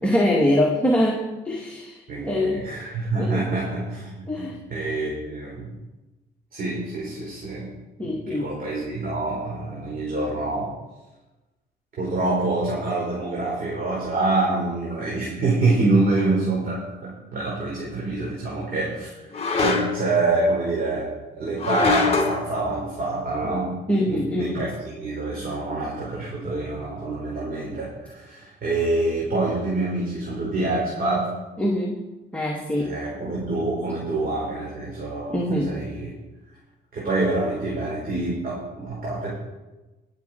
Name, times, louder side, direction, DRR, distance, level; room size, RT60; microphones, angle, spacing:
voice 1, 0.0-2.6 3.2-3.5 4.3-4.6 8.0-8.5 23.9-24.6 31.6-32.0 32.3-33.0 35.3-35.8, left 1 dB, 5° left, -2 dB, 2.0 m, -24 dB
voice 2, 2.1-5.7 6.5-7.7 8.0-10.7 12.0-19.1 19.6-23.8 24.1-31.3 32.8-36.1 36.9-39.3, right 2 dB, 45° right, -4 dB, 4.8 m, -26 dB
sound 1, 16.2-16.3 19.3-20.1 21.6-22.4, left 4 dB, 30° left, 3.2 m, -23 dB
20.5 x 8.1 x 4.5 m, 1.1 s
cardioid pair, 90°, 20 cm